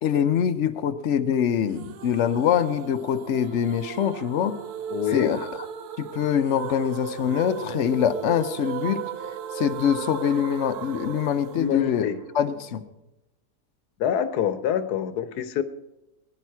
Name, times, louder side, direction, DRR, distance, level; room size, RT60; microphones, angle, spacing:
voice 1, 0.0-4.5 5.1-5.5 6.0-9.0 9.5-12.1 12.3-12.8, left 9 dB, 55° left, 11 dB, 0.9 m, -24 dB
sound 1, 1.8-12.7, right 8 dB, 85° right, 1.3 m, -36 dB
voice 2, 4.9-5.4 11.6-12.2 14.0-15.6, left 8 dB, 90° left, 12 dB, 1.3 m, -26 dB
19.5 x 11.0 x 4.7 m, 0.99 s
omnidirectional pair, 1.6 m